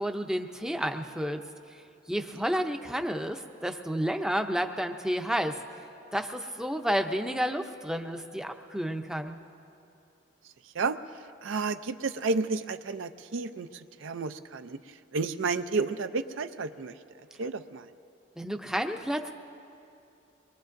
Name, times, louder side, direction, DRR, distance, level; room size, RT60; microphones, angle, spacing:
voice 1, 0.0-1.4 2.1-5.6 6.1-9.4 18.4-19.3, equal, 5° right, 5 dB, 0.5 m, -31 dB
voice 2, 11.4-13.7 14.0-14.8 15.1-16.9 17.4-17.9, right 4 dB, 80° right, 10 dB, 0.5 m, -31 dB
24.5 x 22.0 x 2.6 m, 2.7 s
head